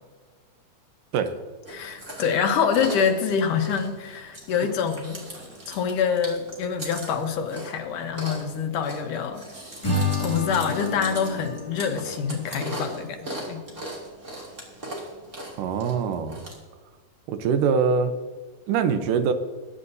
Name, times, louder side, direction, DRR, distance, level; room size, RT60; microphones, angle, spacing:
Chewing mastication, 1.6-16.5, right 1 dB, 25° right, 2.6 m, -39 dB
voice 1, 1.7-5.2 5.7-9.4 10.2-13.6, left 7 dB, 80° left, 4 dB, 2.7 m, -26 dB
Acoustic guitar / Strum, 9.8-13.1, left 2 dB, 10° left, 2.4 m, -30 dB
voice 2, 15.6-16.4 17.3-18.1 18.7-19.3, right 6 dB, 85° right, 8 dB, 2.5 m, -23 dB
21.5 x 9.9 x 2.7 m, 1.5 s
omnidirectional pair, 3.7 m